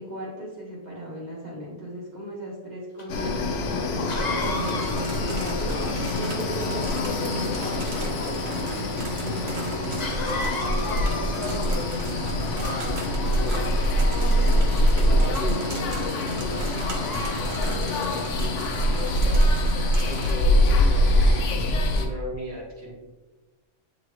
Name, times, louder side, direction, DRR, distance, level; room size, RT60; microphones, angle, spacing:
voice 1, 0.0-8.8 9.2-12.2, right 1 dB, 35° right, -6 dB, 1.5 m, -37 dB
Cough, 3.0-3.1 4.1-6.5 10.0-11.8 12.5-13.3 14.1-14.8 15.4-15.7 16.7-18.3 19.9-20.2 20.6-21.5, left 3 dB, 45° left, 0.7 m, -36 dB
sound 1, 3.1-22.1, left 1 dB, 75° left, 1.1 m, -24 dB
sound 2, 4.4-20.3, right 3 dB, 60° right, 1.1 m, -39 dB
voice 2, 13.4-13.8 14.9-19.4 20.0-22.9, equal, 15° left, -7 dB, 1.8 m, -37 dB
8.6 x 3.8 x 3.0 m, 1.2 s
omnidirectional pair, 1.3 m